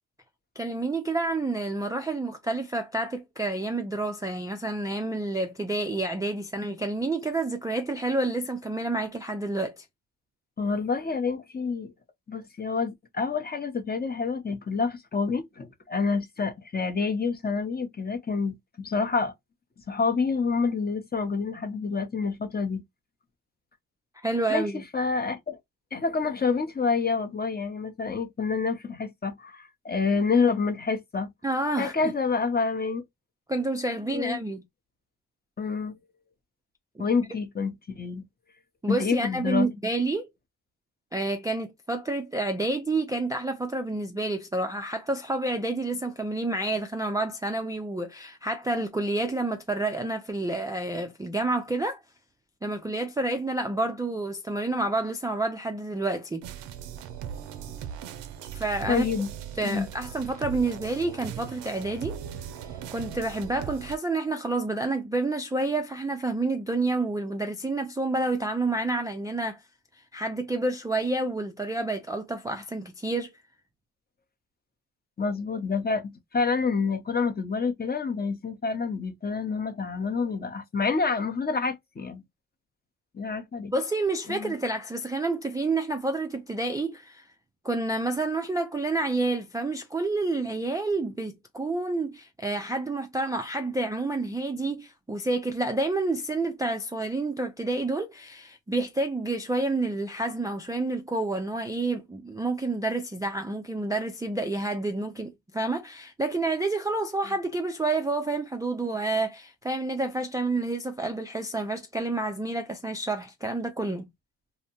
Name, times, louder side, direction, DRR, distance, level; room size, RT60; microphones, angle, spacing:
voice 1, 0.6-9.9 24.2-24.8 31.4-31.9 33.5-34.6 37.0-37.1 38.8-40.3 41.1-52.0 52.6-56.4 58.5-59.1 59.6-62.2 62.9-69.6 70.1-73.3 83.7-87.3 87.6-114.0, right 2 dB, 10° right, 0.4 m, -29 dB
voice 2, 10.6-11.9 12.3-19.3 19.9-22.8 24.5-25.6 25.9-31.3 31.8-33.0 34.1-34.4 35.6-35.9 37.0-38.2 38.9-39.7 58.9-59.3 59.6-59.9 75.2-82.2 83.1-83.7 84.3-84.5, left 4 dB, 25° left, 0.6 m, -28 dB
sound 1, 56.4-64.0, right 9 dB, 85° right, 0.6 m, -39 dB
2.7 x 2.1 x 2.8 m
cardioid pair, 70°, 41 cm